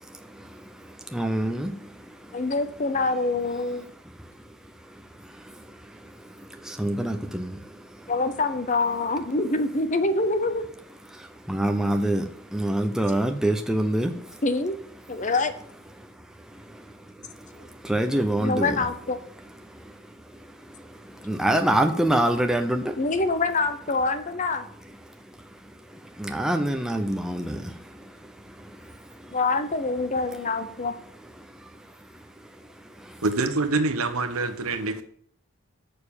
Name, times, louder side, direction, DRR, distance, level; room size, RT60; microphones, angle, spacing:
voice 1, 0.0-2.4 4.2-4.3 4.9-5.0 5.3-8.1 11.1-14.4 16.0-16.1 16.5-18.9 19.7-20.0 20.3-23.0 25.9-29.4 31.4-31.6 32.4-32.5 32.8-33.2, right 1 dB, ahead, 0.6 m, -28 dB
voice 2, 2.3-3.8 8.1-10.6 14.4-14.8 15.1-15.5 17.6-17.7 18.4-19.2 21.3-21.4 23.0-24.7 29.3-30.9, left 3 dB, 35° left, 0.7 m, -25 dB
voice 3, 33.2-35.0, right 3 dB, 70° right, 1.1 m, -25 dB
6.7 x 6.7 x 7.1 m
head